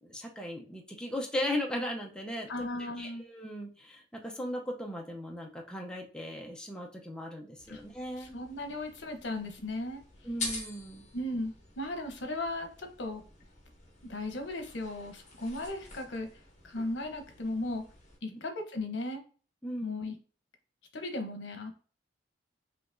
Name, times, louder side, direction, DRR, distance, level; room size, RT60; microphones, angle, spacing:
voice 1, 0.0-2.7 3.0-8.3 10.2-11.1 18.3-18.4 19.6-20.0, left 1 dB, 5° left, 0 dB, 0.6 m, -37 dB
voice 2, 2.5-3.2 7.7-7.8 8.3-10.0 11.1-13.2 14.1-16.3 16.6-17.8 18.2-19.2 19.8-20.1 20.9-21.8, left 2 dB, 75° left, 5 dB, 0.9 m, -36 dB
sound 1, 7.6-18.2, left 3 dB, 40° left, 1.3 m, -47 dB
5.7 x 2.9 x 2.6 m, 0.40 s
head